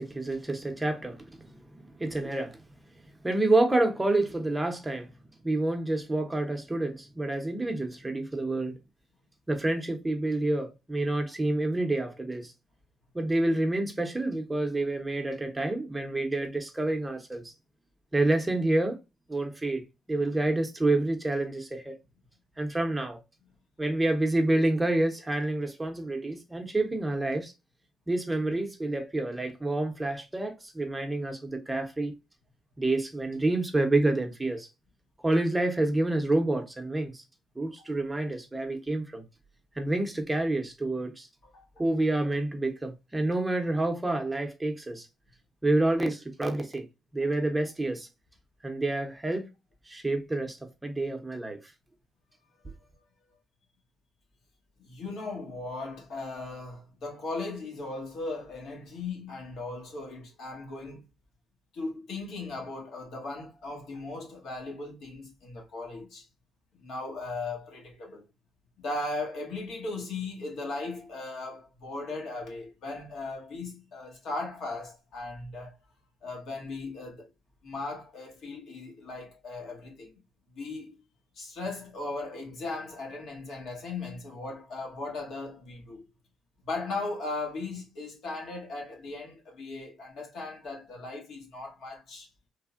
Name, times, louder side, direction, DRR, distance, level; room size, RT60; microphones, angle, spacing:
voice 1, 0.0-2.6 3.2-5.1 5.4-8.7 9.5-12.5 13.1-17.5 18.1-19.0 19.3-19.8 20.1-22.0 22.6-23.2 23.8-27.5 28.1-32.1 32.8-34.7 35.2-37.2 37.6-39.2 39.8-41.3 41.8-45.1 45.6-46.9 47.1-48.1 48.6-49.5 49.9-51.6, right 2 dB, 15° right, 0.6 m, -28 dB
voice 2, 41.4-41.9 47.2-47.3 54.8-61.1 61.7-66.2 66.8-68.3 68.8-75.8 76.2-77.3 77.6-80.1 80.5-81.1 81.3-86.1 86.6-92.3, left 3 dB, 70° left, 1.1 m, -37 dB
3.3 x 2.1 x 2.4 m
cardioid pair, 90°, 0 cm